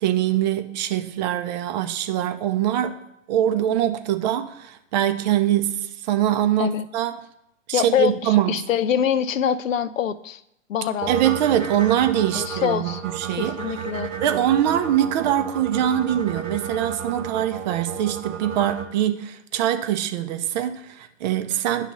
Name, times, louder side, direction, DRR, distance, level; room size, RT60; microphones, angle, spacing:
voice 1, 0.0-3.0 3.3-7.1 7.7-8.6 11.1-13.5 14.2-21.9, right 11 dB, 35° right, 8 dB, 0.5 m, -23 dB
voice 2, 7.7-10.4 10.7-11.1 12.3-13.0 13.3-14.1, left 9 dB, 75° left, 15 dB, 0.5 m, -24 dB
sound 1, 11.0-18.9, right 7 dB, 75° right, 0.9 m, -32 dB
9.7 x 3.3 x 5.2 m, 0.81 s
figure-of-eight pair, 105°, 39 cm